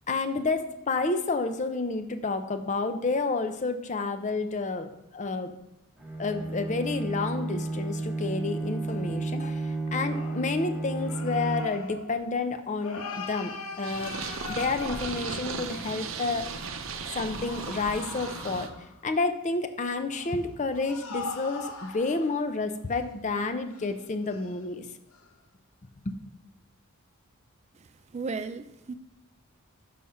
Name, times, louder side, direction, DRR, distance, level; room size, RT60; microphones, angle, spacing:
voice 1, 0.1-5.5 6.2-14.2 14.5-16.5 17.1-18.7 19.0-24.9 26.1-26.2, left 3 dB, 35° left, 0.5 m, -30 dB
Bowed string instrument, 6.0-12.0, right 2 dB, 5° right, 1.2 m, -32 dB
sound 1, 10.1-16.1 17.2-19.0 20.1-22.5 22.9-23.0 23.7-23.9 24.3-24.7 25.1-25.3, left 4 dB, 75° left, 1.0 m, -41 dB
Purr, 13.8-18.7, right 5 dB, 65° right, 0.7 m, -36 dB
voice 2, 27.7-28.9, right 4 dB, 30° right, 0.3 m, -36 dB
6.3 x 5.6 x 5.6 m
head